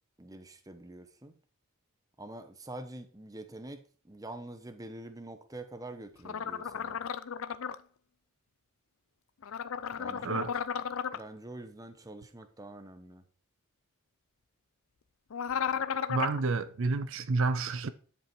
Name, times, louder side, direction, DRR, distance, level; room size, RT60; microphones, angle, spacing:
voice 1, 0.2-1.3 2.2-7.0 10.0-10.4 11.1-13.2, right 1 dB, 15° right, 0.8 m, -45 dB
sound 1, 6.2-7.8 9.4-11.2 15.3-16.4, left 7 dB, 70° left, 0.5 m, -34 dB
voice 2, 16.1-17.9, right 3 dB, 60° right, 0.5 m, -29 dB
10.5 x 5.5 x 4.6 m
head